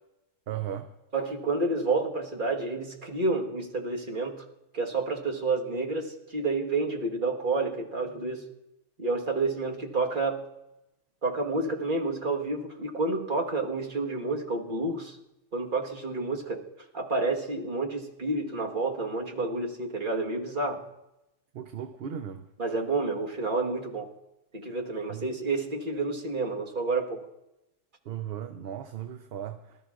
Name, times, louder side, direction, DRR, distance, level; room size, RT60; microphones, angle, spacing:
voice 1, 0.5-0.9 21.5-22.4 25.1-25.3 28.1-29.8, right 9 dB, 60° right, 0.8 m, -36 dB
voice 2, 1.1-4.4 4.7-8.5 9.0-10.5 11.2-15.2 15.5-16.6 16.9-20.8 22.6-24.1 24.5-27.2, right 3 dB, 45° right, 1.5 m, -29 dB
24.0 x 13.0 x 2.4 m
omnidirectional pair, 1.2 m